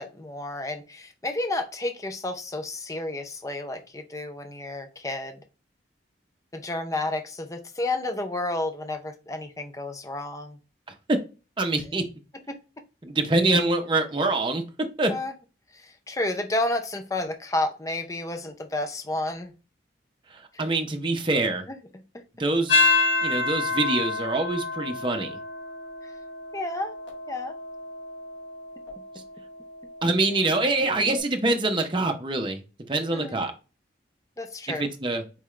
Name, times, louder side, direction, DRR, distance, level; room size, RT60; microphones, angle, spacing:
voice 1, 0.0-5.4 6.5-10.6 12.5-12.6 15.1-15.3 15.7-19.5 20.5-20.6 26.0-26.1 26.5-26.9 27.3-27.6 30.9-31.1 33.1-33.4 34.4-34.9, left 2 dB, 15° left, 7 dB, 0.5 m, -31 dB
voice 2, 11.6-12.0 13.0-14.6 15.0-15.1 20.3-21.7 22.4-22.9 23.2-25.4 30.0-32.6 32.9-33.5 34.7-35.2, right 2 dB, 25° right, 4 dB, 0.7 m, -25 dB
sound 1, 22.7-31.2, left 3 dB, 80° left, 1.7 m, -29 dB
4.6 x 3.6 x 3.1 m, 0.32 s
head